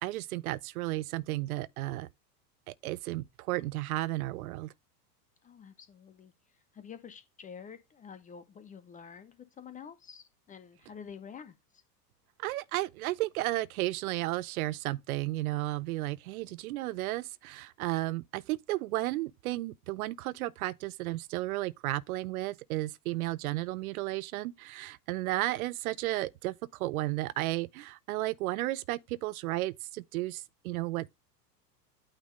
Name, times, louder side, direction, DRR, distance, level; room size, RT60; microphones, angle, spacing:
voice 1, 0.0-2.1 2.7-4.7 12.4-31.1, right 18 dB, 60° right, 0.5 m, -33 dB
voice 2, 5.4-6.3 6.7-11.5, left 7 dB, 15° left, 0.5 m, -48 dB
8.8 x 3.5 x 3.7 m
hypercardioid pair, 90°, 49 cm